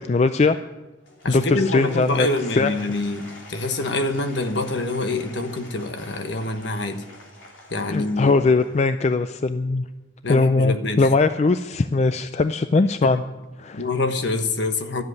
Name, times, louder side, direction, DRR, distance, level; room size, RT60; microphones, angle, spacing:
voice 1, 0.1-0.6 1.3-2.3 2.5-2.7 7.9-9.8 10.3-13.2 13.6-13.8, left 3 dB, 35° left, 10 dB, 0.4 m, -20 dB
Applause / Crowd, 1.0-9.2, left 1 dB, 85° left, 3.1 m, -45 dB
voice 2, 1.2-7.0 7.7-8.5 10.2-11.1 12.7-13.1 13.7-15.0, left 2 dB, 65° left, 7 dB, 1.2 m, -26 dB
12.5 x 7.9 x 9.6 m, 1.1 s
head